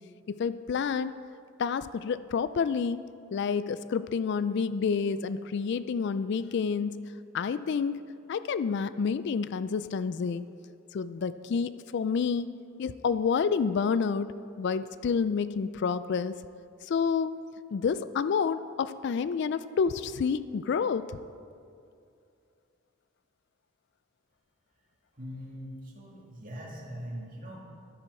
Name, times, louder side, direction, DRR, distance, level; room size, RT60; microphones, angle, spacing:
voice 1, 0.3-1.1 1.6-3.0 3.3-7.0 7.3-10.5 10.9-12.5 12.8-14.3 14.6-16.3 16.8-17.3 17.7-21.2, left 6 dB, 55° left, 14 dB, 0.3 m, -29 dB
voice 2, 25.2-27.6, equal, 40° right, -3 dB, 2.4 m, -41 dB
12.0 x 10.5 x 4.8 m, 2.4 s
head